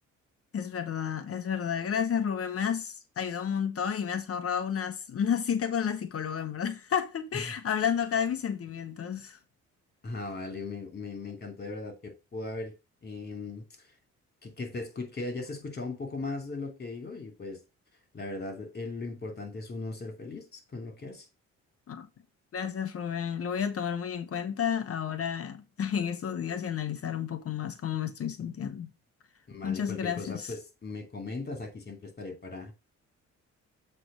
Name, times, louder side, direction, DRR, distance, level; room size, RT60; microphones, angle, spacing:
voice 1, 0.5-9.4 21.9-22.1 22.5-28.9 29.6-30.5, left 8 dB, 50° left, 1.0 m, -31 dB
voice 2, 10.0-12.8 13.0-13.6 14.4-17.6 18.1-21.3 29.5-32.7, left 3 dB, 35° left, 2.8 m, -38 dB
7.6 x 3.4 x 6.2 m
cardioid pair, 90°, 30 cm